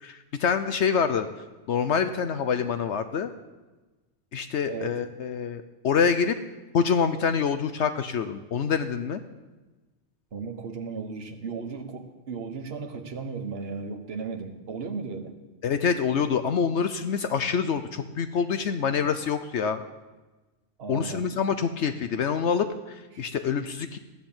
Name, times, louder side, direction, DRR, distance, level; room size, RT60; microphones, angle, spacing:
voice 1, 0.0-1.3 1.7-3.3 4.3-6.4 6.7-9.2 15.6-19.8 20.9-24.0, left 6 dB, 70° left, 10 dB, 1.0 m, -26 dB
voice 2, 4.7-5.0 10.3-15.4 20.8-21.3 23.1-23.3, right 5 dB, 55° right, 5 dB, 1.5 m, -35 dB
15.5 x 10.5 x 7.3 m, 1.2 s
omnidirectional pair, 1.2 m